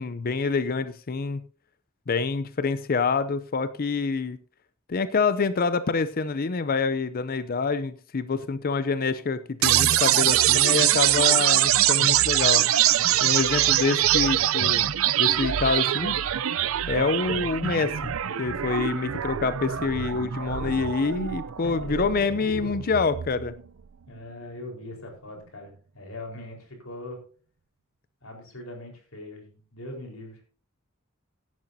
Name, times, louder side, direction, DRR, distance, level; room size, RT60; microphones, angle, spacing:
voice 1, 0.0-1.4 2.1-4.4 4.9-12.7 13.2-14.9 15.2-16.1 16.9-18.1 18.4-23.5, left 4 dB, 45° left, 13 dB, 0.5 m, -26 dB
sound 1, 9.6-23.6, right 12 dB, 70° right, 0.5 m, -24 dB
voice 2, 20.2-20.7 21.6-22.0 24.1-27.2 28.2-30.4, left 1 dB, 85° left, 2 dB, 4.3 m, -41 dB
16.5 x 10.5 x 2.7 m, 0.40 s
head